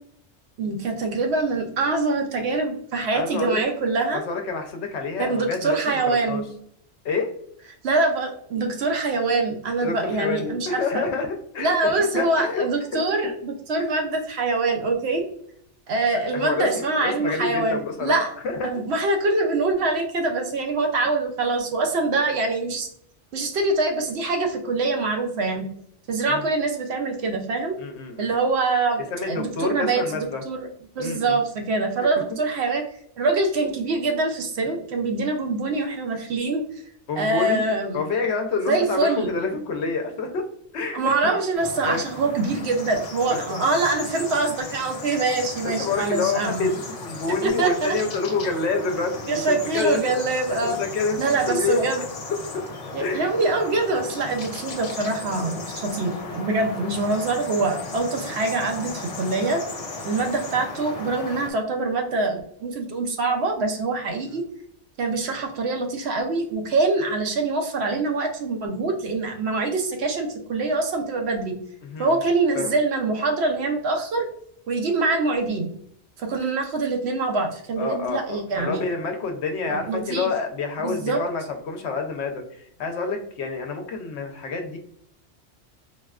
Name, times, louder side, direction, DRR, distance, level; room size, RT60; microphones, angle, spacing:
voice 1, 0.6-4.2 5.2-6.5 7.8-11.0 11.6-15.3 15.9-18.3 18.6-22.9 23.3-25.6 26.1-27.8 28.2-30.7 31.0-32.8 33.2-36.6 37.2-38.0 38.7-39.3 40.9-46.7 47.4-48.0 49.3-50.8 51.2-52.0 52.9-59.6 60.0-64.4 65.0-71.6 72.0-74.3 74.7-75.7 76.2-78.8 79.7-80.3 80.8-81.2, right 3 dB, 70° right, 3 dB, 0.8 m, -24 dB
voice 2, 3.1-3.6 4.1-6.0 6.3-6.4 7.0-7.3 9.8-12.7 16.1-18.2 18.4-18.8 26.3-26.4 27.8-28.3 29.1-30.4 31.0-31.4 37.1-37.6 37.9-40.4 40.7-41.3 41.8-42.0 43.3-43.6 45.6-50.0 50.5-51.9 53.0-53.2 58.1-58.3 64.2-64.3 71.8-72.1 72.5-72.8 77.8-84.8, left 4 dB, 75° left, 4 dB, 0.8 m, -28 dB
sound 1, 41.5-61.5, left 3 dB, 45° left, 0.5 m, -36 dB
4.0 x 2.2 x 2.3 m, 0.67 s
omnidirectional pair, 1.2 m